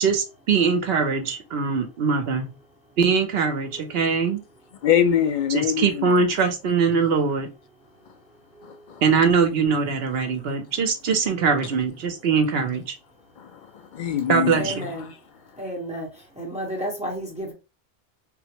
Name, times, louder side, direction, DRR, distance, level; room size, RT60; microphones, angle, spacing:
voice 1, 0.0-2.5 3.0-4.4 5.5-7.5 9.0-12.9 14.3-14.9, right 5 dB, 65° right, 0.9 m, -22 dB
voice 2, 4.8-6.3 8.6-9.0 13.4-15.1, left 9 dB, 60° left, 0.5 m, -24 dB
voice 3, 14.5-15.1 15.6-16.1 16.4-17.5, equal, 5° right, 0.9 m, -31 dB
3.8 x 2.1 x 2.8 m
omnidirectional pair, 1.1 m